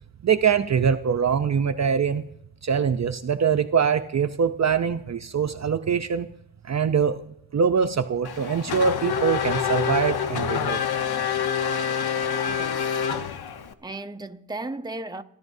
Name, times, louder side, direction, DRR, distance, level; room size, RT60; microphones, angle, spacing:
voice 1, 0.2-2.2 2.6-6.3 6.6-10.8, right 6 dB, 40° right, 0.7 m, -23 dB
Race car auto racing / Accelerating revving vroom, 8.2-13.7, left 7 dB, 70° left, 1.0 m, -26 dB
voice 2, 12.5-13.1 13.8-15.2, right 2 dB, 10° right, 0.9 m, -35 dB
29.0 x 11.5 x 2.7 m
cardioid pair, 60°, 40 cm